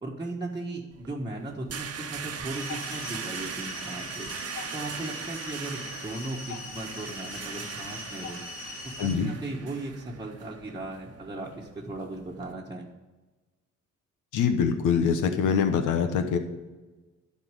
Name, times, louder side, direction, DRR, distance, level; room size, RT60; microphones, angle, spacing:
voice 1, 0.0-4.3 4.7-8.4 8.8-12.9, right 2 dB, 15° right, -4 dB, 1.5 m, -37 dB
sound 1, 0.9-12.5, right 6 dB, 50° right, 1.0 m, -40 dB
sound 2, 2.5-9.2, left 3 dB, 70° left, 1.9 m, -41 dB
voice 2, 9.0-9.3 14.3-16.4, left 6 dB, 85° left, 6 dB, 1.1 m, -24 dB
11.5 x 4.3 x 7.6 m, 1.2 s
cardioid pair, 90°, 30 cm